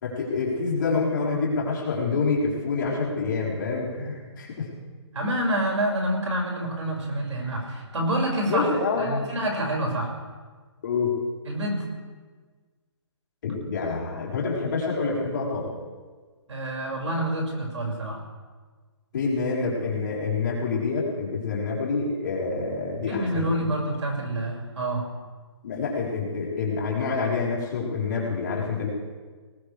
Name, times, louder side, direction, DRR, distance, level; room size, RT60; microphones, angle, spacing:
voice 1, 0.0-4.7 8.5-9.3 10.8-11.1 13.4-15.7 19.1-23.5 25.6-28.9, left 4 dB, 40° left, -5 dB, 4.2 m, -27 dB
voice 2, 5.1-8.7 9.0-10.1 11.5-11.9 16.5-18.2 23.1-25.0, right 1 dB, 80° right, -1 dB, 6.0 m, -27 dB
20.0 x 19.0 x 3.5 m, 1.4 s
hypercardioid pair, 165°, 15 cm